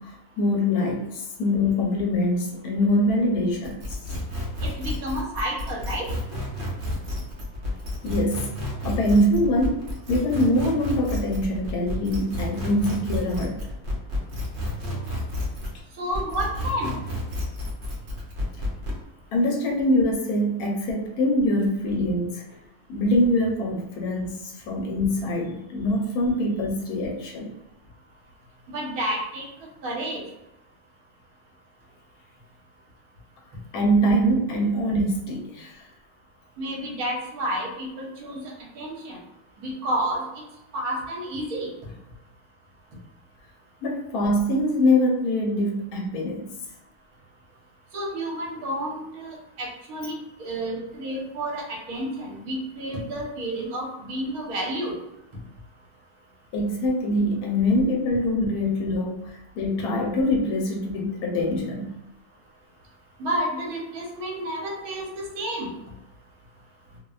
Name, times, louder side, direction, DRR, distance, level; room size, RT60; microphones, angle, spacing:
voice 1, 0.0-4.0 8.0-8.5 8.8-9.8 10.1-13.6 19.3-22.4 22.9-27.5 33.7-35.8 43.8-46.5 56.5-62.0, left 1 dB, 80° left, 0 dB, 1.1 m, -24 dB
sound 1, 3.6-15.8 16.1-19.0, left 1 dB, 60° right, 0.8 m, -31 dB
voice 2, 4.6-6.1 16.0-16.9 28.7-29.5 29.8-30.2 36.6-38.4 38.8-39.2 39.6-40.2 40.7-41.7 47.9-50.1 50.4-54.9 63.2-65.1 65.4-65.7, right 1 dB, 75° right, -2 dB, 1.2 m, -30 dB
2.6 x 2.1 x 2.3 m, 0.92 s
omnidirectional pair, 1.6 m